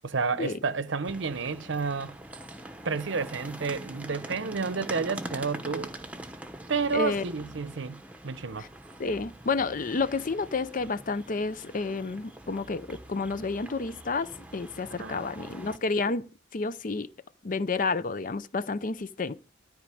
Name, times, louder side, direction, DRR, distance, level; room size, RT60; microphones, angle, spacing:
voice 1, 0.0-2.1 2.8-5.9 6.7-8.7 14.9-15.3, right 4 dB, 65° right, 0.7 m, -30 dB
sound 1, 1.0-15.8, right 1 dB, 5° right, 0.9 m, -44 dB
voice 2, 6.9-7.3 8.6-8.7 9.0-16.3 16.5-17.1 17.4-19.3, left 4 dB, 40° left, 0.5 m, -30 dB
13.5 x 5.1 x 9.2 m
head